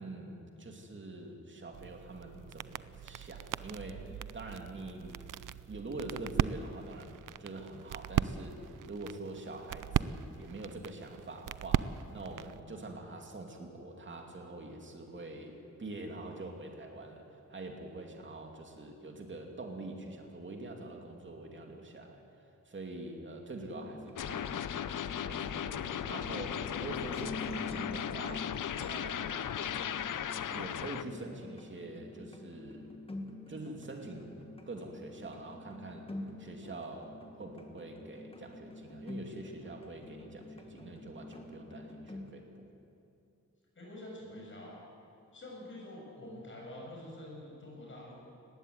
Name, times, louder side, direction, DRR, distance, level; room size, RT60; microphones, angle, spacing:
voice 1, 0.0-4.0 4.3-5.2 5.7-8.6 8.8-17.2 17.5-22.2 22.7-24.7 25.2-28.5 28.9-29.5 30.5-32.9 33.5-34.3 34.7-36.0 36.4-42.4, right 2 dB, 40° right, 2 dB, 2.6 m, -45 dB
sound 1, 1.7-12.6, right 10 dB, 85° right, 0.5 m, -38 dB
voice 2, 3.9-4.2 40.5-40.9 43.7-44.7 45.3-48.1, left 1 dB, 40° left, -2 dB, 6.8 m, -47 dB
sound 2, 23.7-42.3, left 2 dB, 20° left, 1.6 m, -47 dB
sound 3, 24.2-31.0, left 9 dB, 80° left, 0.7 m, -37 dB
19.5 x 15.5 x 9.5 m, 2.7 s
wide cardioid pair, 165°, 31 cm